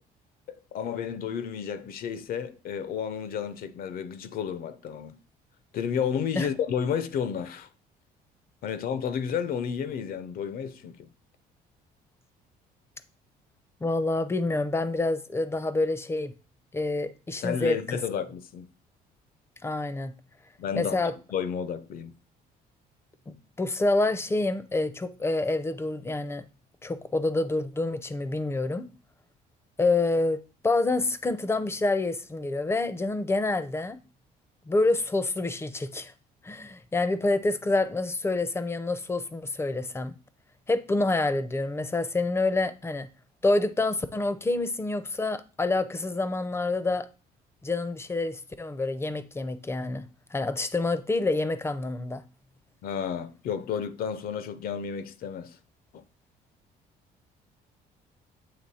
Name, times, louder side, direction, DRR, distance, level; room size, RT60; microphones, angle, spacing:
voice 1, 0.5-5.2 5.7-7.7 8.6-11.1 17.4-18.7 20.6-21.0 21.3-22.1 52.8-55.6 55.9-56.0, left 7 dB, 60° left, 0.6 m, -31 dB
voice 2, 13.8-16.3 16.7-18.0 19.6-20.1 20.7-21.1 23.3-26.4 26.8-28.9 29.8-34.0 34.7-36.1 36.4-40.2 40.7-43.1 43.4-47.1 47.6-52.2, left 2 dB, 15° left, 0.5 m, -27 dB
7.6 x 3.0 x 4.1 m
cardioid pair, 110°, 17 cm